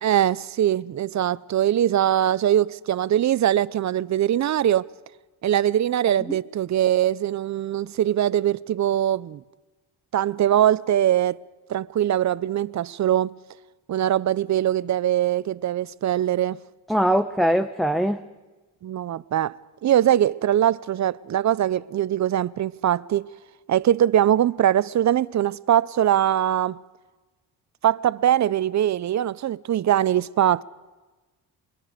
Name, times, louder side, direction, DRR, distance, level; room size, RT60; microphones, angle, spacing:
voice 1, 0.0-4.9 5.4-9.4 10.1-11.4 11.7-13.3 13.9-16.6 18.8-23.3 23.7-26.8 27.8-30.6, right 11 dB, 45° right, 0.6 m, -22 dB
voice 2, 16.9-18.2, equal, ahead, 0.8 m, -21 dB
27.5 x 22.5 x 5.1 m
cardioid pair, 95°, 39 cm